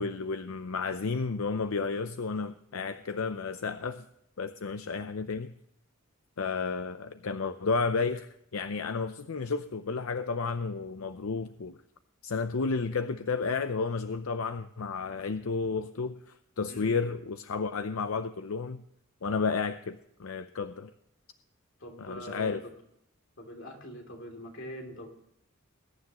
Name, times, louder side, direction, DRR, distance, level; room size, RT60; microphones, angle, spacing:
voice 1, 0.0-4.1 4.4-5.5 6.4-11.8 12.2-18.8 19.2-20.9 22.0-22.6, left 4 dB, 85° left, 10 dB, 0.6 m, -32 dB
voice 2, 16.7-17.1 21.8-22.7 23.4-25.1, equal, 65° left, 3 dB, 2.9 m, -43 dB
21.0 x 9.8 x 3.0 m, 0.78 s
head